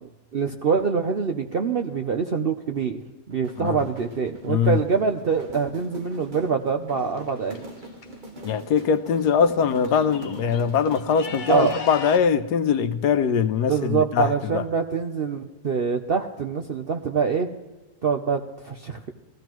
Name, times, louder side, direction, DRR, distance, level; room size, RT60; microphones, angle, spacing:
voice 1, 0.0-3.0 3.3-7.6 11.5-11.8 13.6-17.5 18.0-19.1, right 6 dB, 55° right, 5 dB, 0.6 m, -25 dB
sound 1, 3.3-12.0, right 1 dB, 30° right, 1.2 m, -43 dB
voice 2, 3.6-3.9 4.5-4.8 8.4-14.6, left 7 dB, 80° left, 10 dB, 1.3 m, -22 dB
sound 2, 7.0-8.1 9.2-9.3 9.6-12.2, left 5 dB, 40° left, 0.7 m, -38 dB
20.5 x 14.5 x 3.0 m, 1.1 s
omnidirectional pair, 1.7 m